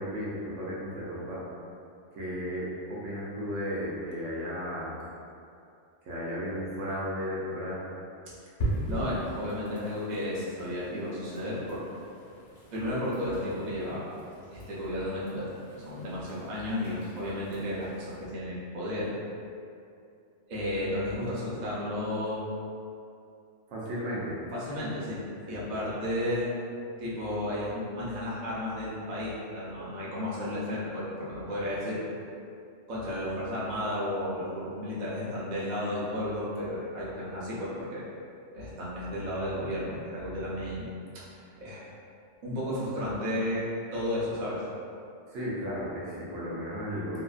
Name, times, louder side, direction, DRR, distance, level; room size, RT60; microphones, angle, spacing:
voice 1, 0.0-1.4 2.1-5.0 6.0-7.8 23.7-24.4 25.5-25.6 45.3-47.2, equal, 80° right, -7 dB, 1.0 m, -34 dB
sound 1, 8.6-18.3, right 1 dB, 65° left, 1.1 m, -40 dB
voice 2, 8.8-11.8 12.7-14.0 14.5-19.1 20.5-22.5 24.5-26.5 27.0-32.0 32.9-38.1 38.5-40.9 41.6-41.9 42.4-43.7 43.9-44.6, left 1 dB, 45° right, -8 dB, 0.7 m, -33 dB
2.8 x 2.4 x 2.3 m, 2.5 s
omnidirectional pair, 1.3 m